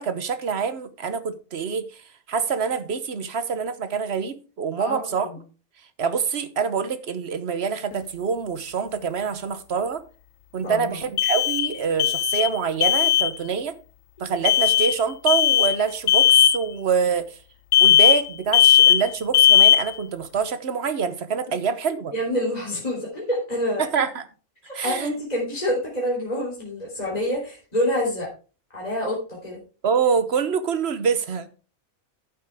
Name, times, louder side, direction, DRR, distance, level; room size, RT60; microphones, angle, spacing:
voice 1, 0.0-2.0 2.3-5.3 6.0-10.0 10.5-13.7 14.2-17.4 17.8-22.1 23.8-24.2 24.7-25.1 29.8-31.5, right 6 dB, 55° right, 1.2 m, -25 dB
voice 2, 4.8-5.4 10.6-10.9 22.1-23.9 24.8-28.3 28.7-29.6, equal, 30° left, 3.6 m, -27 dB
sound 1, 7.9-8.0 11.2-11.7 12.0-12.6 12.8-13.3 14.4-14.9 15.3-15.8 16.1-16.6 17.7-18.3 18.5-19.1 19.3-19.9, left 11 dB, 75° left, 1.0 m, -17 dB
11.0 x 8.4 x 3.5 m
omnidirectional pair, 1.4 m